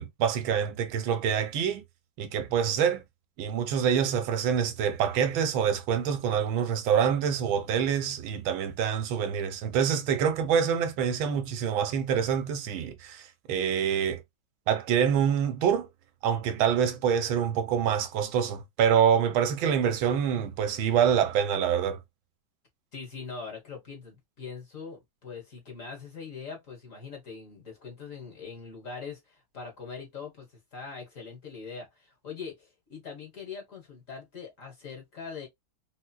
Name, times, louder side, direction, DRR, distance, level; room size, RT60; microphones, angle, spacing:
voice 1, 0.0-1.8 2.2-3.0 3.4-14.2 14.7-15.9 16.2-22.0, right 8 dB, 75° right, 1.4 m, -26 dB
voice 2, 22.9-35.5, left 5 dB, 45° left, 1.6 m, -42 dB
4.3 x 2.3 x 2.3 m
omnidirectional pair, 2.2 m